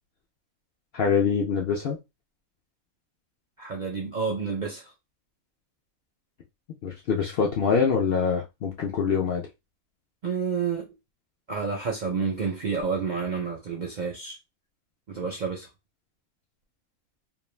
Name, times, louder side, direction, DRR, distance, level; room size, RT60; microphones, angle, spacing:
voice 1, 0.9-2.0 6.8-9.4, left 6 dB, 65° left, 0.6 m, -24 dB
voice 2, 3.6-4.9 10.2-10.9 11.5-14.4 15.1-15.7, right 5 dB, 55° right, 0.5 m, -29 dB
2.5 x 2.2 x 3.1 m
omnidirectional pair, 1.4 m